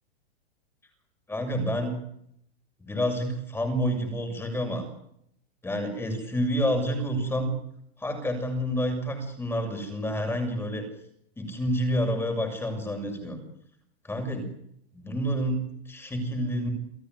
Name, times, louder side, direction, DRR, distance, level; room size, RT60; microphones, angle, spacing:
voice 1, 1.3-2.0 2.8-4.8 5.6-7.5 8.0-10.8 11.4-13.4 14.1-14.5 14.9-16.7, equal, 5° left, 5 dB, 7.0 m, -28 dB
29.5 x 16.5 x 9.8 m, 0.75 s
supercardioid pair, 145°, 32 cm